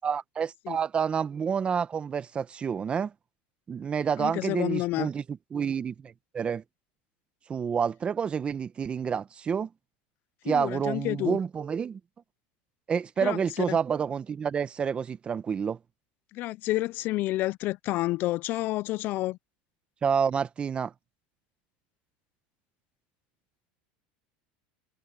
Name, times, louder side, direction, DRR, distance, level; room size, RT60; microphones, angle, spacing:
voice 1, 0.0-3.1 3.7-5.2 5.5-6.6 7.5-9.7 10.5-12.0 12.9-15.8 20.0-20.9, right 7 dB, 25° right, 1.0 m, -29 dB
voice 2, 4.2-5.1 10.4-11.4 13.2-13.4 13.7-13.8 16.3-19.4, left 17 dB, 50° left, 0.4 m, -29 dB
supercardioid pair, 125°, 4 cm